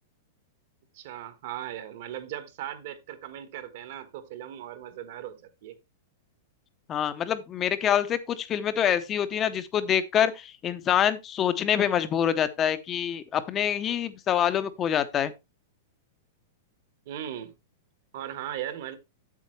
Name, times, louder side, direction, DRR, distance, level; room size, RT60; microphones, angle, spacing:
voice 1, 0.9-5.8 17.1-17.5 18.1-19.0, right 11 dB, 50° right, 1.3 m, -38 dB
voice 2, 6.9-15.3, left 9 dB, 20° left, 0.7 m, -26 dB
8.3 x 7.5 x 3.2 m
supercardioid pair, 170°, 0 cm